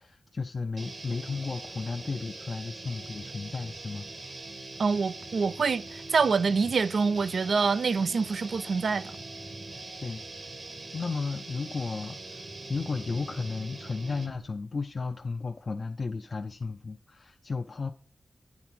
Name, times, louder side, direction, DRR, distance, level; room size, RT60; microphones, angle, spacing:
voice 1, 0.0-4.1 10.0-10.5 10.9-17.9, left 4 dB, 60° left, 0.5 m, -34 dB
sound 1, 0.8-14.5, right 2 dB, 65° right, 1.5 m, -42 dB
voice 2, 4.8-9.2, right 5 dB, 85° right, 0.3 m, -26 dB
9.6 x 3.6 x 6.0 m
wide cardioid pair, 75°, 0 cm